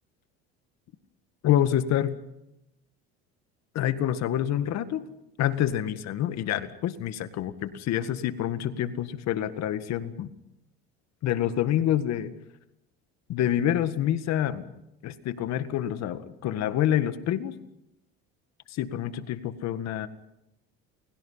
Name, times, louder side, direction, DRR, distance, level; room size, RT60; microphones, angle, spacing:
voice 1, 1.4-2.2 3.8-5.0 5.4-10.3 11.2-12.3 13.3-14.7 15.0-17.6 18.7-20.1, left 11 dB, 60° left, 11 dB, 1.9 m, -27 dB
29.5 x 23.0 x 5.8 m, 0.86 s
supercardioid pair, 105°, 30 cm